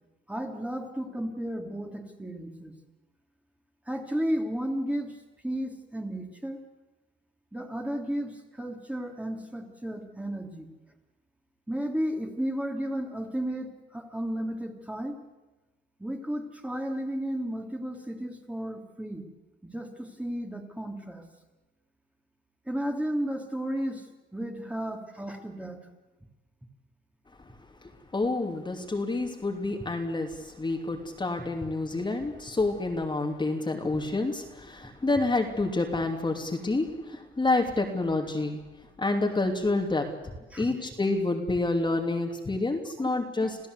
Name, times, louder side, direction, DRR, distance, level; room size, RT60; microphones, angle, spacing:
voice 1, 0.3-2.8 3.9-5.2 5.4-6.6 7.5-10.7 11.7-15.2 16.0-19.3 19.6-21.2 22.7-24.1 24.3-25.9 40.5-40.7 43.4-43.5, equal, 5° right, 2 dB, 3.2 m, -33 dB
voice 2, 28.1-38.6 39.0-40.1 40.6-43.6, left 2 dB, 25° left, 2 dB, 2.9 m, -28 dB
27.5 x 15.5 x 8.3 m, 1.1 s
cardioid pair, 90°, 20 cm